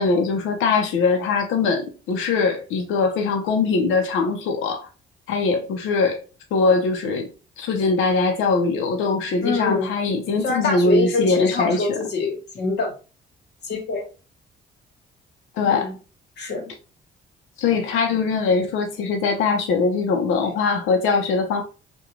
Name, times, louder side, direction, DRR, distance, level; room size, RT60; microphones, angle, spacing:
voice 1, 0.0-4.9 5.3-6.2 6.5-7.3 7.6-12.0 15.6-15.9 17.6-21.6, left 4 dB, 85° left, 0.5 m, -21 dB
voice 2, 9.4-9.9 10.4-12.9 13.7-14.1 15.6-15.9 16.4-16.7 20.4-20.5, left 3 dB, 60° left, 1.0 m, -25 dB
2.4 x 2.2 x 2.9 m
cardioid pair, 90°, 20 cm